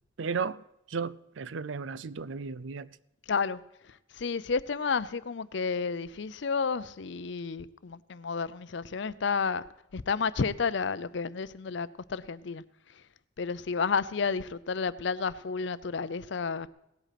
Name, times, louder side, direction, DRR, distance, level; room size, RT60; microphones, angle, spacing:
voice 1, 0.2-2.9, right 5 dB, 75° right, 0.5 m, -34 dB
voice 2, 3.3-3.6 4.2-9.6 9.9-12.6 13.4-16.7, left 5 dB, 65° left, 0.5 m, -31 dB
17.5 x 8.2 x 5.8 m
head